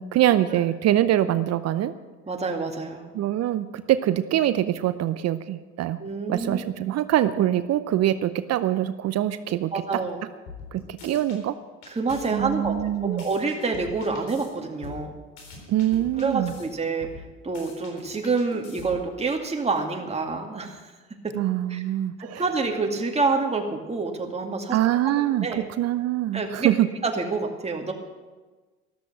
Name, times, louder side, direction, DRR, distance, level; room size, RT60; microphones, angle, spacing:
voice 1, 0.0-1.9 3.1-6.0 6.3-10.0 10.7-11.5 12.3-13.2 15.7-16.5 21.3-22.4 24.7-26.9, right 12 dB, 45° right, 13 dB, 0.7 m, -24 dB
voice 2, 2.3-3.2 6.0-6.6 9.7-10.2 11.9-15.1 16.2-17.1 17.4-20.8 21.2-21.3 21.7-21.8 22.4-24.8 25.2-25.6 26.3-26.7 27.0-27.9, right 4 dB, 20° right, 2 dB, 2.2 m, -27 dB
sound 1, 10.5-11.4 11.8-14.5 14.8-16.6 17.0-19.1, left 4 dB, 65° left, 4.0 m, -43 dB
13.5 x 12.5 x 6.0 m, 1.3 s
hypercardioid pair, 60°, 35 cm